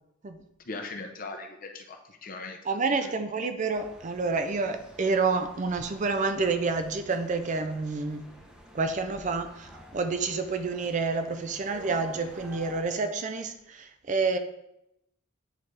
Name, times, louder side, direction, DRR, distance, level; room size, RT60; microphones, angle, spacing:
voice 1, 0.6-2.6 3.0-3.1, left 3 dB, 45° left, 0.7 m, -39 dB
voice 2, 2.7-8.3 8.7-14.4, right 4 dB, 35° right, 0.4 m, -29 dB
sound 1, 3.7-12.8, right 1 dB, 5° right, 0.8 m, -50 dB
9.0 x 4.0 x 3.2 m
head